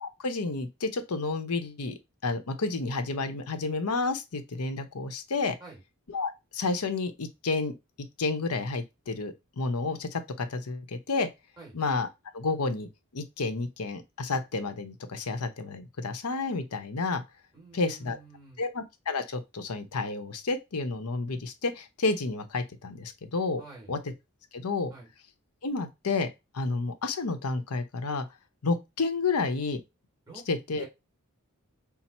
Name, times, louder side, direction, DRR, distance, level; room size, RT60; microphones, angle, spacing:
voice 1, 0.0-5.6 6.1-7.7 8.2-11.3 11.7-12.1 12.3-12.9 13.1-17.2 17.7-18.2 18.6-23.6 23.9-24.0 24.5-24.9 25.6-26.3 26.5-28.2 28.6-29.8 30.5-30.8, left 3 dB, 85° left, 0.8 m, -30 dB
voice 2, 17.5-18.6 23.6-24.0 24.9-25.1 30.3-30.5 30.8-30.9, right 3 dB, 20° right, 2.2 m, -48 dB
5.8 x 2.0 x 4.1 m
head